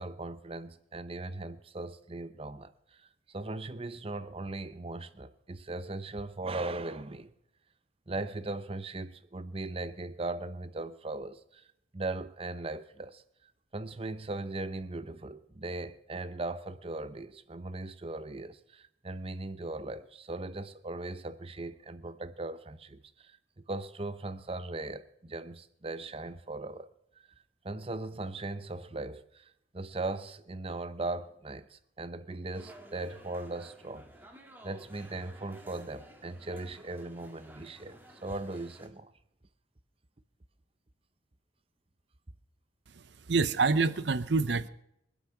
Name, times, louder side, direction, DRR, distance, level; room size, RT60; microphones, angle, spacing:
voice 1, 0.0-7.3 8.1-11.7 11.9-23.4 23.7-26.9 27.2-27.3 27.6-34.1 34.6-39.1, right 2 dB, 30° right, 0.7 m, -39 dB
sound 1, 32.5-38.9, right 1 dB, 10° right, 1.7 m, -54 dB
voice 2, 42.9-44.7, right 4 dB, 65° right, 0.7 m, -27 dB
23.5 x 8.4 x 5.9 m
head